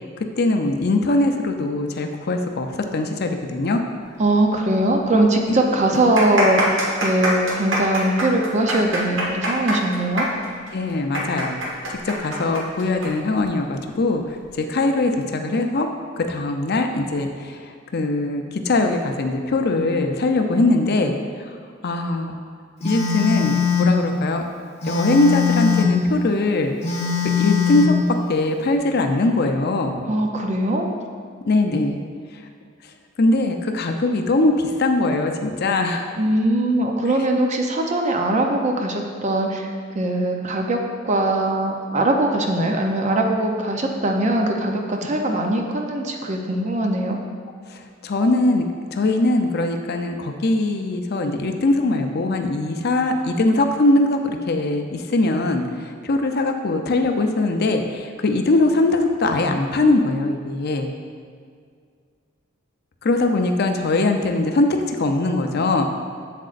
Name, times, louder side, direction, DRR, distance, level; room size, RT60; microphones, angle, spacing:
voice 1, 0.4-2.7 2.9-3.8 10.7-15.9 16.2-21.1 21.8-22.4 22.8-24.4 24.9-26.7 27.4-28.0 28.3-30.0 31.5-32.0 33.2-36.2 45.0-45.1 47.7-48.7 48.9-60.9 63.0-65.9, left 2 dB, 50° left, 5 dB, 0.5 m, -21 dB
voice 2, 4.2-6.6 7.0-10.3 30.1-30.9 36.2-39.7 39.9-40.8 41.1-47.2, right 1 dB, 35° right, 2 dB, 0.6 m, -21 dB
sound 1, 4.7-4.8 5.1-5.2 5.8-13.1 13.4-13.5 14.2-14.5, right 1 dB, 65° right, 1.5 m, -25 dB
Telephone, 22.8-24.0 24.8-26.0 26.8-28.0, left 6 dB, 35° left, 0.9 m, -21 dB
7.7 x 7.4 x 2.5 m, 2.1 s
head